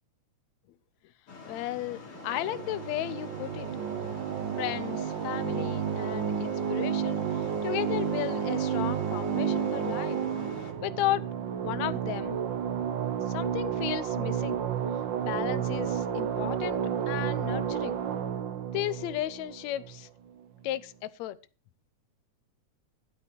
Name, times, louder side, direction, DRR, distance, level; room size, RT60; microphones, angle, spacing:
sound 1, 1.3-10.7, left 4 dB, 50° left, 3.3 m, -46 dB
voice 1, 1.5-3.7 4.6-10.2 10.8-11.3 11.6-12.4 13.3-14.6 15.2-18.0 18.7-20.1 20.6-21.4, left 14 dB, 75° left, 2.0 m, -34 dB
sound 2, 2.2-20.3, right 8 dB, 55° right, 1.3 m, -31 dB
13.0 x 12.0 x 4.4 m
omnidirectional pair, 3.4 m